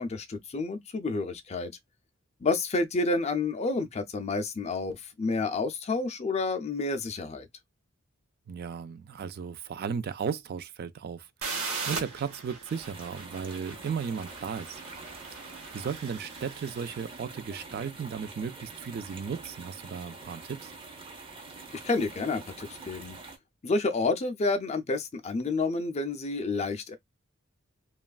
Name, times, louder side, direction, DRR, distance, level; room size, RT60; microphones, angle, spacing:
voice 1, 0.0-1.7 2.4-7.5 21.7-23.2 23.6-27.0, left 3 dB, 30° left, 0.4 m, -29 dB
voice 2, 8.5-14.8 15.7-20.7, right 6 dB, 45° right, 0.3 m, -35 dB
sound 1, 11.4-17.1, right 4 dB, 80° right, 1.0 m, -39 dB
sound 2, 12.7-23.4, right 3 dB, 25° right, 0.7 m, -46 dB
2.9 x 2.4 x 2.3 m
head